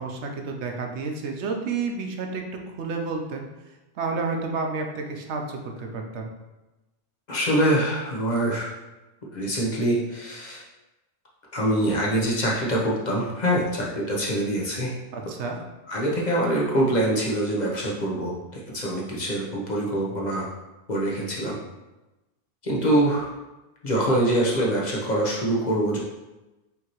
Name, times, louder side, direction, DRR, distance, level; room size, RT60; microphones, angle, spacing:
voice 1, 0.0-3.5 4.0-6.3 15.1-15.6, right 4 dB, 80° right, 2 dB, 0.9 m, -30 dB
voice 2, 7.3-8.7 9.3-10.6 11.5-14.9 15.9-20.5 20.9-21.6 22.6-23.3 23.8-26.0, right 1 dB, 45° left, -4 dB, 0.8 m, -24 dB
5.5 x 2.8 x 2.9 m, 1.1 s
omnidirectional pair, 1.1 m